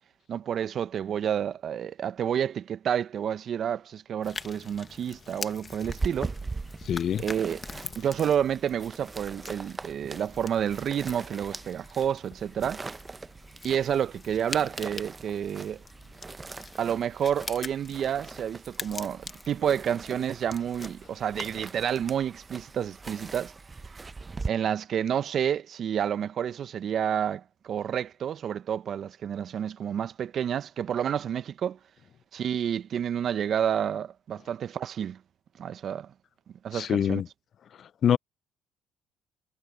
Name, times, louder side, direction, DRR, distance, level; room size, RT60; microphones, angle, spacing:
voice 1, 0.3-6.3 7.2-7.6 7.9-12.8 13.6-15.8 16.8-23.5 24.5-31.8 32.3-35.2 35.6-36.1 36.6-37.2, right 9 dB, 55° right, 1.2 m, -29 dB
sound 1, 4.2-21.7, left 4 dB, 35° left, 1.6 m, -44 dB
sound 2, 5.8-24.5, right 3 dB, 25° right, 1.0 m, -41 dB
voice 2, 6.9-7.2 36.7-37.3 38.0-38.2, left 9 dB, 55° left, 0.5 m, -24 dB
hypercardioid pair, 65°, 0 cm